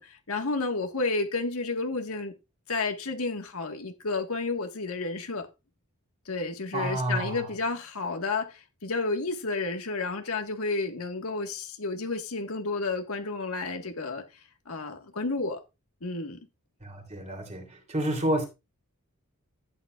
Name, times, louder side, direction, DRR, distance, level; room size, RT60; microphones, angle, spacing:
voice 1, 0.0-2.3 2.7-5.5 6.3-14.2 14.7-15.6 16.0-16.4, left 3 dB, 85° left, 1.6 m, -31 dB
voice 2, 6.7-7.5 16.8-18.4, right 1 dB, 30° right, 3.3 m, -29 dB
13.5 x 9.0 x 2.4 m
head